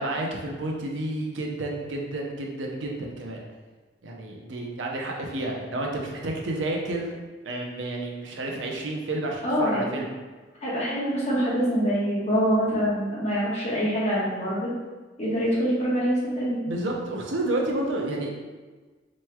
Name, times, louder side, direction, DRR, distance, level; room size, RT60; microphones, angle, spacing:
voice 1, 0.0-3.4 4.0-7.1 7.4-10.0 16.7-18.3, right 2 dB, 85° right, 0 dB, 0.6 m, -30 dB
voice 2, 9.4-9.9 10.6-14.7 15.2-16.6, equal, 35° left, -7 dB, 1.2 m, -25 dB
4.3 x 3.0 x 2.3 m, 1.3 s
head